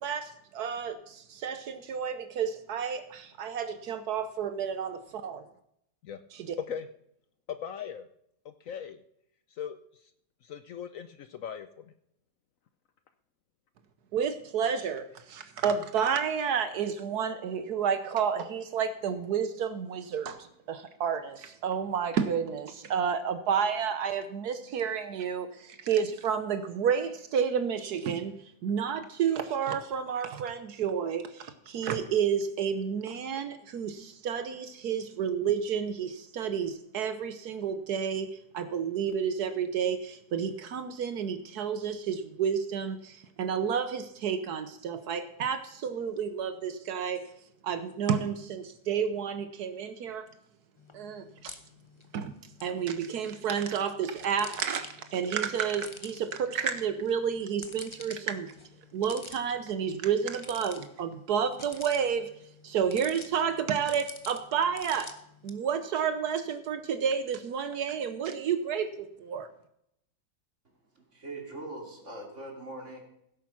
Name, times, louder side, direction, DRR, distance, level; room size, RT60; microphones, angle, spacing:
voice 1, 0.0-5.0 5.2-5.4 6.3-6.5 14.1-28.3 28.6-38.3 38.5-47.2 47.6-50.3 50.9-51.6 52.1-52.3 52.6-58.5 58.9-62.3 62.6-65.2 65.4-69.5, right 7 dB, 75° right, 10 dB, 1.3 m, -30 dB
voice 2, 7.6-8.1 8.4-9.0 9.6-9.8 10.4-11.7, left 8 dB, 65° left, 11 dB, 0.9 m, -39 dB
sound 1, 50.8-65.5, left 3 dB, 20° left, 0.9 m, -49 dB
voice 3, 70.6-73.0, right 2 dB, 45° right, 1 dB, 3.1 m, -42 dB
16.0 x 8.6 x 5.9 m, 0.75 s
omnidirectional pair, 1.7 m